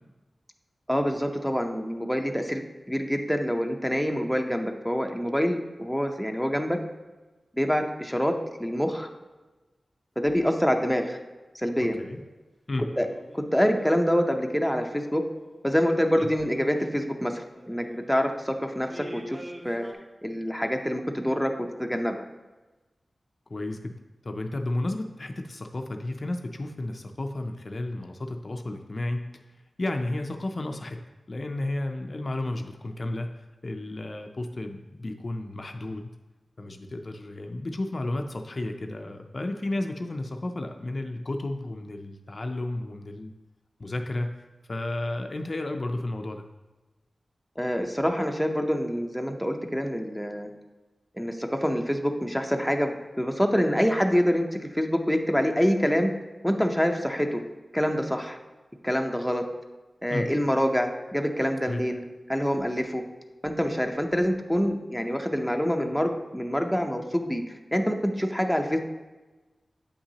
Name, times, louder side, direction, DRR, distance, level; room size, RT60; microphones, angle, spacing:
voice 1, 0.9-6.8 7.5-9.1 10.2-11.2 11.5-12.0 13.0-13.1 13.3-15.2 15.6-19.4 19.6-19.9 20.2-22.2 47.6-50.5 51.1-56.1 56.4-57.4 57.7-58.4 58.8-59.4 60.0-62.0 62.3-63.0 63.4-67.4 67.7-68.8, equal, ahead, 3 dB, 0.6 m, -26 dB
voice 2, 11.8-12.2 12.7-12.9 16.2-16.3 23.5-23.9 24.2-29.2 29.8-31.0 31.3-33.3 33.6-36.1 36.6-43.3 43.8-44.3 44.7-46.4 60.1-60.3 61.6-61.8, left 2 dB, 45° left, 5 dB, 0.4 m, -32 dB
sound 1, 12.0-12.3 12.9-14.6 15.0-18.3 18.9-19.9, equal, 20° right, 1.0 m, -47 dB
8.3 x 5.7 x 2.8 m, 1.2 s
wide cardioid pair, 85°, 0 cm